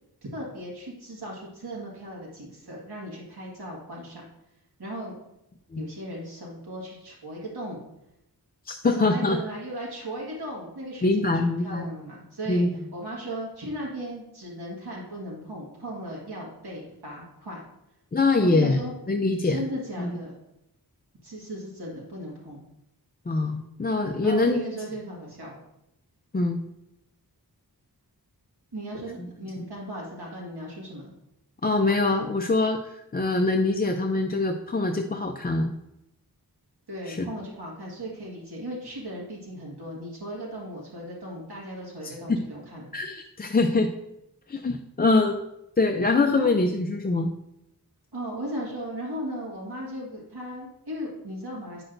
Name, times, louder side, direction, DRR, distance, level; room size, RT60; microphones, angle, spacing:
voice 1, 0.2-4.3 4.8-5.2 5.8-7.8 8.8-12.6 12.9-17.6 18.4-18.9 19.5-20.4 21.2-22.6 24.2-25.6 28.7-31.1 36.9-42.9 46.3-46.5 48.1-51.8, right 1 dB, 75° right, -4 dB, 1.8 m, -36 dB
voice 2, 8.7-9.4 11.0-11.9 12.5-12.7 18.1-18.8 19.1-19.6 20.0-20.1 23.3-24.6 26.3-26.6 31.6-35.7 37.0-37.3 42.0-42.4 42.9-43.9 44.5-45.4 45.8-47.3, left 3 dB, 25° left, 4 dB, 0.4 m, -24 dB
8.8 x 6.1 x 2.6 m, 0.84 s
wide cardioid pair, 80°, 39 cm